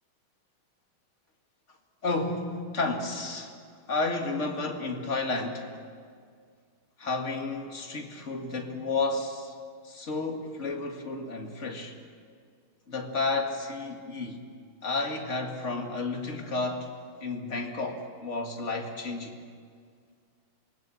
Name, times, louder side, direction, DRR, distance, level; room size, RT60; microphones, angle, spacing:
voice 1, 2.0-3.6 3.9-5.7 7.0-9.6 9.8-12.0 12.9-14.4 14.8-16.9 17.2-19.4, left 3 dB, 35° left, 2 dB, 2.3 m, -31 dB
27.0 x 20.0 x 7.2 m, 2.1 s
omnidirectional pair, 2.3 m